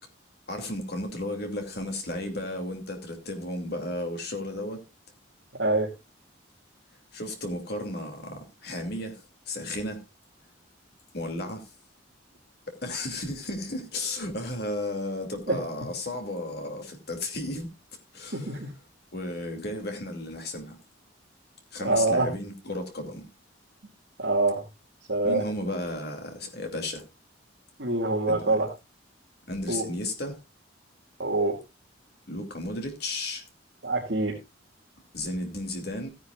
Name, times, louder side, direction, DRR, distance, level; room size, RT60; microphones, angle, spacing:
voice 1, 0.5-4.8 7.1-10.0 11.1-11.7 12.7-17.7 18.1-18.6 19.1-20.8 21.7-23.3 25.2-27.1 28.3-28.6 29.5-30.4 32.3-33.4 35.1-36.1, left 1 dB, 55° left, 2.6 m, -34 dB
voice 2, 18.3-18.7 21.8-22.3 24.2-24.6 25.1-25.4 27.8-28.7 29.7-29.9 31.2-31.6 33.8-34.3, right 2 dB, 65° right, 2.3 m, -25 dB
16.5 x 10.0 x 2.4 m
head